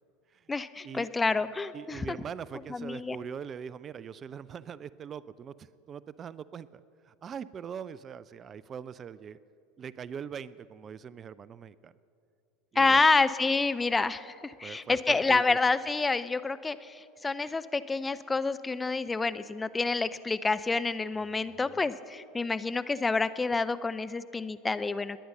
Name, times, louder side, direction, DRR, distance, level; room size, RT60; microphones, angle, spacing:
voice 1, 0.5-2.2 2.7-3.2 12.8-25.2, left 3 dB, 15° left, 13 dB, 0.6 m, -28 dB
voice 2, 1.7-9.4 9.8-11.9 12.7-13.0 14.6-15.6 21.7-21.8, right 7 dB, 35° right, 18 dB, 0.4 m, -42 dB
20.0 x 9.5 x 6.6 m, 2.6 s
hypercardioid pair, 80°, 0 cm